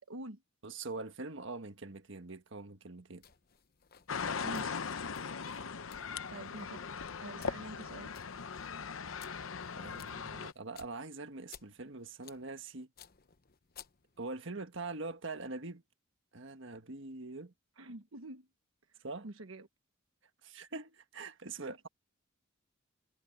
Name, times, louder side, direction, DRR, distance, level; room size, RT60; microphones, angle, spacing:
voice 1, 0.1-0.4 4.4-4.8 6.3-8.1 17.8-18.5 18.9-19.7 21.6-21.8, right 1 dB, 80° right, 1.2 m, -47 dB
voice 2, 0.6-3.2 9.7-12.9 14.2-15.8 16.3-17.5 19.0-19.3 20.4-21.9, right 3 dB, 65° right, 1.6 m, -43 dB
sound 1, 3.2-14.4, left 8 dB, 50° left, 1.0 m, -59 dB
sound 2, 4.1-10.5, left 5 dB, 80° left, 0.8 m, -39 dB
head